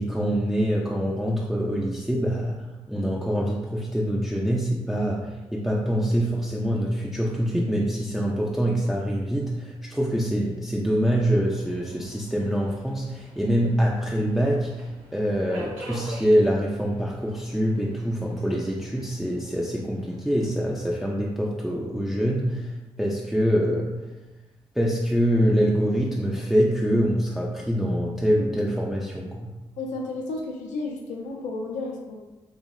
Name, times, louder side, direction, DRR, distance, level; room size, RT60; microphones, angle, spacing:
voice 1, 0.0-24.0 24.8-29.5, equal, ahead, -3 dB, 0.3 m, -25 dB
Subway metro underground, 11.2-21.1, right 1 dB, 80° right, 0.5 m, -46 dB
voice 2, 29.8-32.1, left 3 dB, 80° left, 0 dB, 0.4 m, -32 dB
2.6 x 2.0 x 2.3 m, 1.1 s
supercardioid pair, 40°, 12 cm